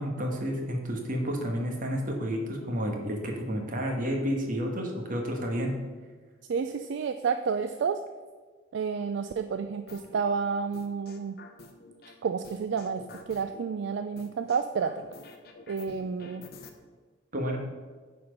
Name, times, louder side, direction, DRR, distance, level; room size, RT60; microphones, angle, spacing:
voice 1, 0.0-5.8 17.3-17.6, equal, 40° right, 2 dB, 1.3 m, -30 dB
voice 2, 6.5-8.0 8.7-11.4 12.2-15.0 15.7-16.4, right 5 dB, 60° right, 9 dB, 0.3 m, -30 dB
sound 1, 9.9-10.2 10.7-12.1 12.4-13.6 14.2-16.7, left 3 dB, 50° left, 0.8 m, -48 dB
9.7 x 4.3 x 5.1 m, 1.4 s
head